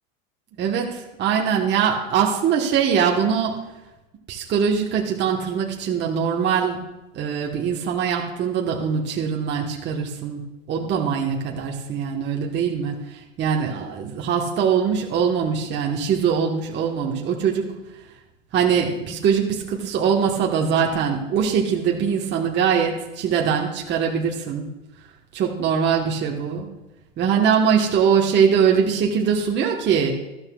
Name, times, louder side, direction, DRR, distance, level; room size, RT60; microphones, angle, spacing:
voice 1, 0.6-3.5 4.3-6.8 7.1-10.4 10.7-12.9 13.4-17.7 18.5-24.6 25.3-26.7 27.2-30.1, right 7 dB, 35° right, -1 dB, 1.2 m, -22 dB
13.5 x 12.0 x 2.3 m, 1.0 s
supercardioid pair, 115°, 31 cm